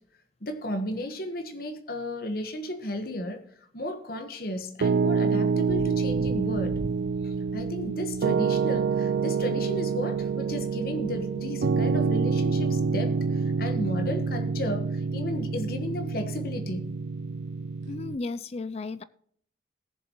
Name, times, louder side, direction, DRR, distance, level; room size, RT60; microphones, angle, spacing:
voice 1, 0.4-3.4 3.7-6.8 7.2-16.9, left 1 dB, 55° left, 7 dB, 1.3 m, -34 dB
Piano, 4.8-18.2, right 5 dB, 75° right, 0.4 m, -27 dB
sound 1, 5.7-13.2, right 1 dB, 45° right, 0.8 m, -45 dB
voice 2, 17.9-19.0, left 3 dB, 35° left, 16 dB, 0.4 m, -34 dB
19.5 x 7.2 x 3.1 m, 0.64 s
head